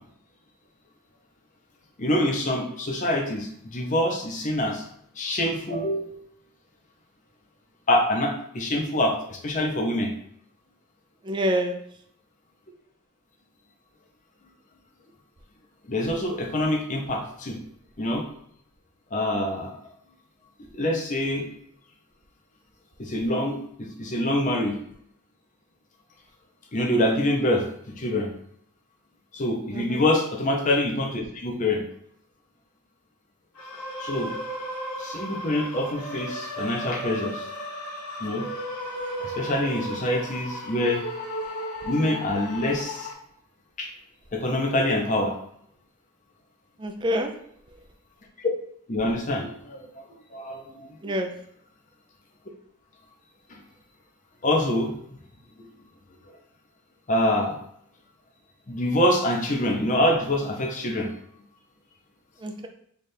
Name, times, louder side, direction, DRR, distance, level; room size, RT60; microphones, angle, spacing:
voice 1, 2.0-4.8 5.2-6.2 7.9-10.1 15.9-17.6 18.0-18.2 19.1-19.8 20.7-21.5 23.0-24.8 26.7-27.7 28.0-28.3 29.3-31.8 34.0-34.3 35.0-37.4 38.2-38.5 39.2-41.0 41.8-43.1 43.8-43.9 44.3-45.3 48.9-50.1 50.3-50.9 53.5-53.6 54.4-55.2 57.1-57.6 58.7-61.1, left 1 dB, 35° left, 2 dB, 0.6 m, -25 dB
voice 2, 11.2-11.7 29.7-30.0 46.8-47.3 51.0-51.3 62.4-62.7, equal, 20° right, 4 dB, 0.3 m, -26 dB
sound 1, 33.6-43.1, equal, 80° left, 0.9 m, -35 dB
3.3 x 2.4 x 4.2 m, 0.68 s
head